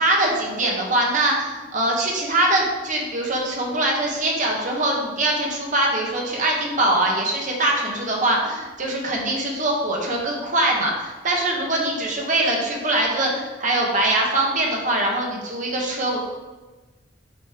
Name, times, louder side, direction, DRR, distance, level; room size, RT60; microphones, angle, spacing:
voice 1, 0.0-16.2, right 1 dB, 40° right, -1 dB, 1.2 m, -22 dB
6.1 x 5.2 x 3.7 m, 1.2 s
head